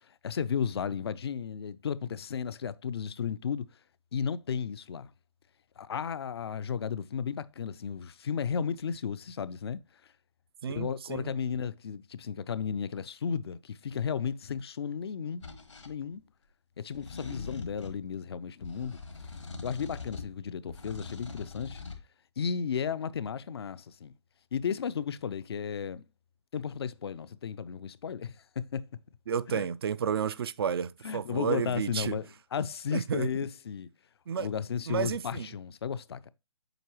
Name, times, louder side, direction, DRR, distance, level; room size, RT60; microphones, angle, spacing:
voice 1, 0.2-3.7 4.1-5.1 5.8-9.8 10.7-15.5 15.8-16.2 16.8-19.0 19.6-21.8 22.4-24.1 24.5-26.0 26.5-28.9 29.5-29.6 31.0-33.9 34.4-36.3, left 7 dB, 60° left, 0.4 m, -34 dB
voice 2, 10.6-11.3 29.3-32.2 32.9-33.3 34.3-34.5 34.9-35.5, right 7 dB, 55° right, 0.4 m, -31 dB
sound 1, 15.4-15.9 16.9-18.0 18.6-20.4 20.7-22.0, left 4 dB, 80° left, 1.4 m, -42 dB
7.8 x 4.5 x 3.0 m
figure-of-eight pair, 135°, 15 cm